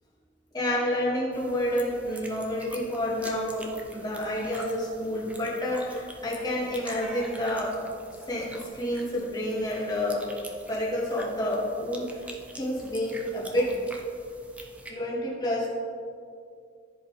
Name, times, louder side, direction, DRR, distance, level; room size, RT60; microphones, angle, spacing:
voice 1, 0.5-7.8 8.3-10.2 10.7-13.8 14.9-15.7, left 1 dB, 20° left, -5 dB, 1.9 m, -29 dB
sound 1, 1.3-14.9, right 1 dB, 5° right, 0.7 m, -46 dB
sound 2, 7.0-9.5, right 2 dB, 35° left, 1.7 m, -51 dB
14.5 x 5.1 x 3.3 m, 2.3 s
head